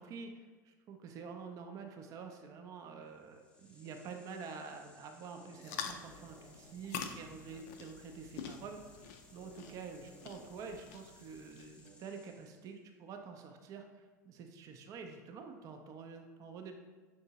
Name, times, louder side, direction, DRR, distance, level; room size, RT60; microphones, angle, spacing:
voice 1, 0.0-16.7, right 5 dB, 35° right, 4 dB, 0.4 m, -48 dB
sound 1, 3.1-12.7, equal, 10° left, 0.7 m, -61 dB
sound 2, 5.6-11.9, left 7 dB, 55° left, 0.4 m, -47 dB
5.7 x 2.6 x 2.8 m, 1.3 s
figure-of-eight pair, 80°, 10 cm